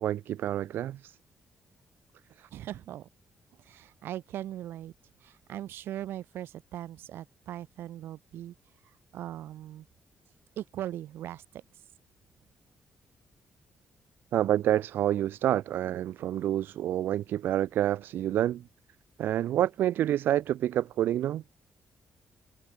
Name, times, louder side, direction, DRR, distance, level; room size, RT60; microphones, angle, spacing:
voice 1, 0.0-1.2 2.4-2.5 14.3-18.6 19.2-21.4, right 12 dB, 70° right, 0.4 m, -28 dB
voice 2, 2.5-3.1 3.7-4.9 5.2-8.5 9.1-9.8 10.6-11.4, right 12 dB, 85° right, 1.5 m, -39 dB
cardioid pair, 175°, 4 cm